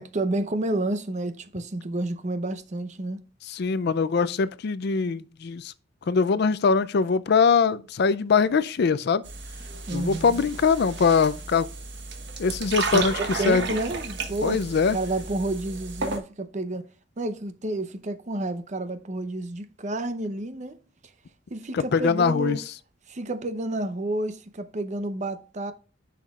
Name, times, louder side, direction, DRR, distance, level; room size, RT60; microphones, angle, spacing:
voice 1, 0.0-3.2 9.9-10.4 12.9-14.6 14.9-16.9 17.2-20.8 21.5-22.6 23.1-25.7, right 2 dB, 40° right, 0.7 m, -30 dB
voice 2, 3.5-5.7 6.1-9.2 9.9-11.7 12.4-13.6 14.4-15.0 21.7-22.6, left 5 dB, 55° left, 0.4 m, -22 dB
sound 1, 9.2-16.2, right 4 dB, 60° right, 1.3 m, -33 dB
10.0 x 5.8 x 2.4 m
head